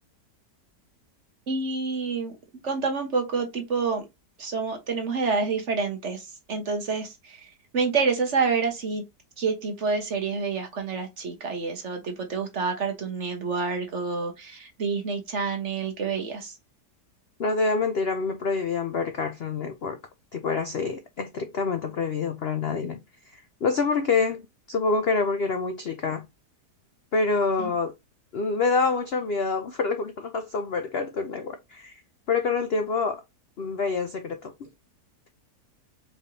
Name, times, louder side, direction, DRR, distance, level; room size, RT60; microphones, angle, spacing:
voice 1, 1.5-2.3 2.6-4.0 4.4-6.2 6.5-7.4 7.7-9.0 9.4-16.5 27.6-27.7, right 4 dB, 45° right, 1.3 m, -28 dB
voice 2, 17.4-20.0 20.3-23.0 23.3-26.2 27.1-27.9 28.3-31.9 32.3-33.2 33.6-34.7, left 4 dB, 60° left, 0.6 m, -27 dB
4.8 x 3.3 x 2.7 m
omnidirectional pair, 1.8 m